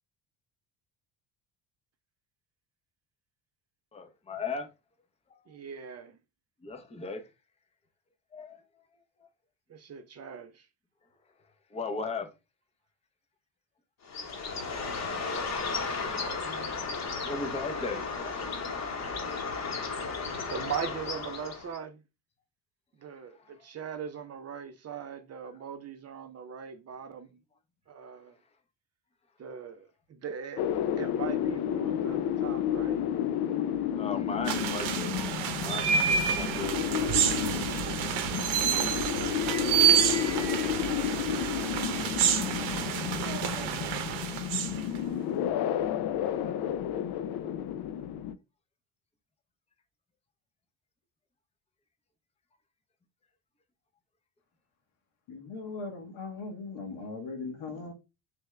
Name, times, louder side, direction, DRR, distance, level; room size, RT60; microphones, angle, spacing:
voice 1, 3.9-4.7 5.3-5.4 6.6-7.3 8.3-8.6 11.7-12.3 16.8-17.0 17.2-18.1 33.9-35.1 35.6-37.2, left 4 dB, 15° left, 0.6 m, -36 dB
voice 2, 5.5-6.2 9.7-10.7 14.7-16.5 20.5-22.0 23.0-27.4 27.9-28.4 29.4-33.1 37.8-39.4, right 7 dB, 35° right, 0.5 m, -41 dB
Bird, 14.0-21.8, left 4 dB, 35° left, 1.0 m, -34 dB
sound 1, 30.6-48.3, left 10 dB, 55° left, 0.5 m, -31 dB
sound 2, 34.5-45.0, right 8 dB, 80° right, 0.8 m, -28 dB
voice 3, 55.3-57.9, left 3 dB, 85° left, 1.5 m, -39 dB
3.4 x 3.3 x 3.1 m
cardioid pair, 120°, 46 cm